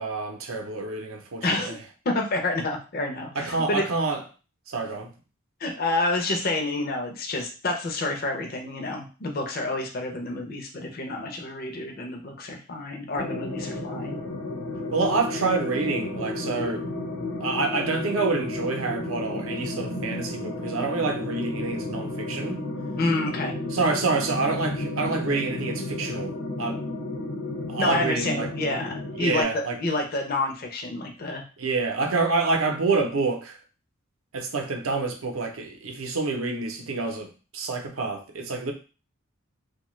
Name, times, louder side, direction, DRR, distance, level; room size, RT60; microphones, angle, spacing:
voice 1, 0.0-1.8 3.4-4.2 4.7-5.1 14.9-16.8 17.4-22.6 23.7-26.8 27.7-28.5 29.2-29.8 31.6-33.6 34.3-38.7, right 3 dB, 80° right, 4 dB, 0.6 m, -27 dB
voice 2, 1.4-1.8 2.1-3.8 5.6-14.2 23.0-23.5 27.8-31.4, left 2 dB, 45° left, 2 dB, 0.5 m, -28 dB
sound 1, 13.2-29.4, left 2 dB, 75° left, 0.9 m, -32 dB
2.7 x 2.2 x 3.0 m, 0.34 s
head